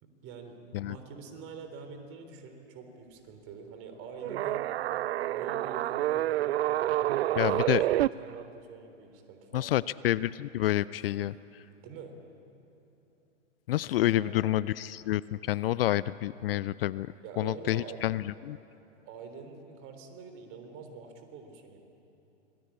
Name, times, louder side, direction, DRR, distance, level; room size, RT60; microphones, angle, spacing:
voice 1, 0.0-4.6 5.3-7.7 8.0-9.9 11.8-12.1 14.2-14.4 17.2-18.0 19.1-21.8, right 5 dB, 35° right, 6 dB, 3.6 m, -45 dB
sound 1, 4.2-8.1, right 14 dB, 60° right, 0.5 m, -28 dB
voice 2, 7.4-7.8 9.5-11.6 13.7-18.6, left 14 dB, 50° left, 19 dB, 0.5 m, -29 dB
26.0 x 19.5 x 8.5 m, 2.9 s
hypercardioid pair, 115°, 37 cm